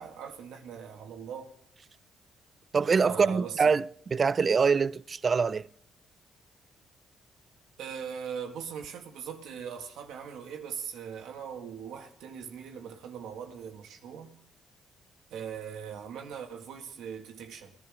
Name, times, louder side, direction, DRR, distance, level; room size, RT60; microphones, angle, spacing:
voice 1, 0.0-1.5 3.1-3.8 7.8-14.3 15.3-17.7, right 7 dB, 85° right, 1.9 m, -40 dB
voice 2, 2.7-5.7, right 5 dB, 40° right, 0.4 m, -24 dB
21.0 x 11.0 x 3.8 m
cardioid pair, 90°, 0 cm